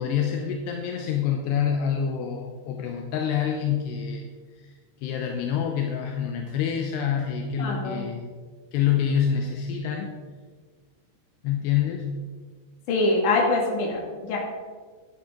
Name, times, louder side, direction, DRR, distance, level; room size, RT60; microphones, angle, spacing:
voice 1, 0.0-4.3 4.5-4.7 5.0-8.3 8.7-10.1 11.4-12.1, left 8 dB, 80° left, 2 dB, 2.8 m, -26 dB
voice 2, 7.6-8.0 12.9-14.4, left 2 dB, 50° left, -2 dB, 3.2 m, -24 dB
11.5 x 10.5 x 3.8 m, 1.5 s
omnidirectional pair, 5.1 m